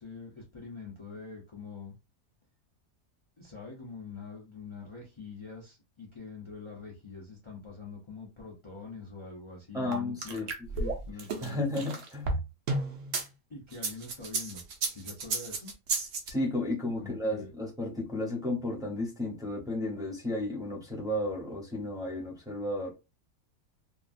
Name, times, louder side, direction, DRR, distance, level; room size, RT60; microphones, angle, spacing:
voice 1, 0.0-2.0 3.4-11.6 13.5-15.7 17.0-17.5, left 4 dB, 45° left, 0.3 m, -45 dB
voice 2, 9.7-10.5 10.8-10.9 11.4-12.3 16.3-22.9, left 1 dB, 5° right, 0.6 m, -33 dB
sound 1, 9.9-13.2 13.7-16.3, right 3 dB, 65° right, 1.0 m, -32 dB
2.8 x 2.4 x 2.5 m
omnidirectional pair, 1.6 m